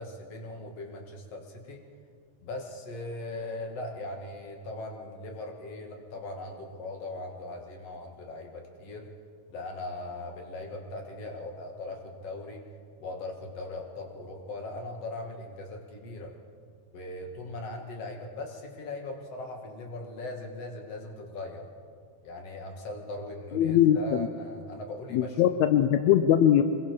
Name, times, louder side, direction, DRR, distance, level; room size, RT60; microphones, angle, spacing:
voice 1, 0.0-1.8 2.4-9.1 9.5-12.6 13.0-16.4 16.9-21.7 22.2-25.6, left 2 dB, 50° left, 2 dB, 2.9 m, -39 dB
voice 2, 23.5-24.3 25.1-26.6, left 10 dB, 75° left, 9 dB, 1.7 m, -21 dB
26.5 x 21.5 x 4.8 m, 2.2 s
omnidirectional pair, 3.7 m